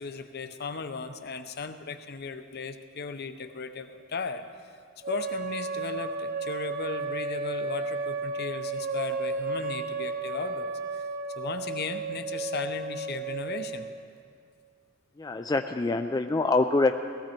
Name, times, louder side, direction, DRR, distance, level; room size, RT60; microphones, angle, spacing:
voice 1, 0.0-4.4 5.1-11.0 11.4-13.9, left 4 dB, 50° left, 9 dB, 0.7 m, -36 dB
sound 1, 5.0-14.0, right 3 dB, 45° right, 0.8 m, -33 dB
voice 2, 15.2-17.0, left 3 dB, 20° left, 6 dB, 0.3 m, -25 dB
18.0 x 15.0 x 4.4 m, 2.3 s
head